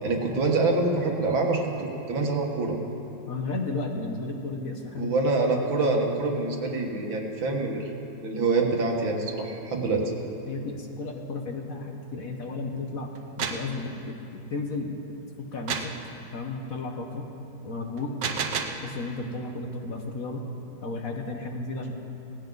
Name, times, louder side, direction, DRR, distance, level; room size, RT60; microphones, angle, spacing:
voice 1, 0.0-2.8 5.0-10.0, right 3 dB, 85° right, 0 dB, 2.4 m, -26 dB
voice 2, 3.2-5.1 10.4-13.1 13.4-15.0 15.4-16.0 16.3-17.3 17.6-18.1 18.8-20.4 20.8-21.9, left 3 dB, 50° left, 2 dB, 1.3 m, -33 dB
sound 1, 13.2-13.7 15.7-16.0 18.0-18.8, right 6 dB, 70° right, 1.5 m, -30 dB
17.5 x 16.5 x 4.0 m, 3.0 s
omnidirectional pair, 2.1 m